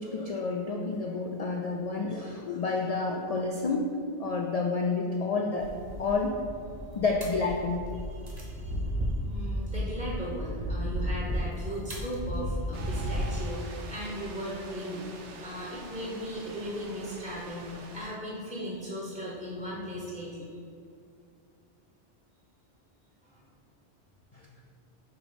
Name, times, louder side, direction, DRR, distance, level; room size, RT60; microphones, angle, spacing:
voice 1, 0.0-3.9 4.2-5.7 6.0-6.4 7.0-7.8 24.3-24.4, left 3 dB, 65° left, 1 dB, 0.3 m, -29 dB
sound 1, 5.6-13.5, equal, 35° right, 1.4 m, -34 dB
voice 2, 8.1-15.1 15.4-20.5 23.2-23.4, equal, 5° right, -7 dB, 0.8 m, -38 dB
sound 2, 12.7-18.1, right 3 dB, 80° right, 1.0 m, -46 dB
6.6 x 3.0 x 5.1 m, 2.3 s
omnidirectional pair, 1.2 m